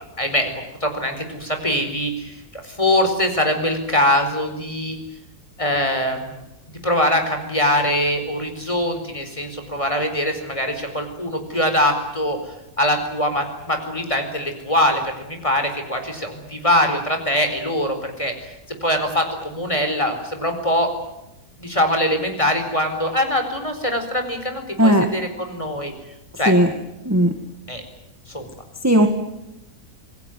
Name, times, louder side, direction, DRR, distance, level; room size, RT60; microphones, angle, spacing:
voice 1, 0.2-0.5 0.8-5.0 5.6-6.4 6.8-12.4 12.8-18.3 18.8-20.9 21.6-25.9 26.4-26.5 27.7-27.8 28.3-28.4, left 1 dB, 20° left, 6 dB, 4.6 m, -22 dB
voice 2, 24.8-25.1 26.5-26.7 27.1-27.3 28.8-29.1, right 1 dB, 10° right, 5 dB, 1.9 m, -15 dB
27.0 x 19.5 x 9.3 m, 0.91 s
omnidirectional pair, 1.6 m